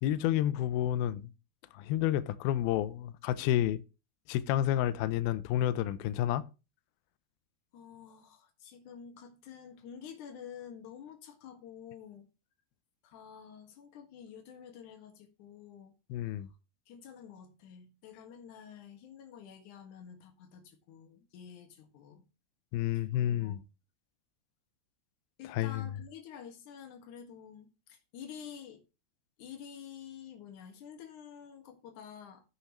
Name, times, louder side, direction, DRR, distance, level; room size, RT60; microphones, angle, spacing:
voice 1, 0.0-1.3 1.7-3.8 4.3-6.5 16.1-16.5 22.7-23.6 25.5-25.8, left 12 dB, 90° left, 2.2 m, -30 dB
voice 2, 7.7-12.3 13.0-15.9 16.9-22.3 23.0-23.6 25.4-28.8 29.4-32.4, left 8 dB, 55° left, 2.6 m, -49 dB
16.0 x 5.7 x 3.1 m
omnidirectional pair, 5.0 m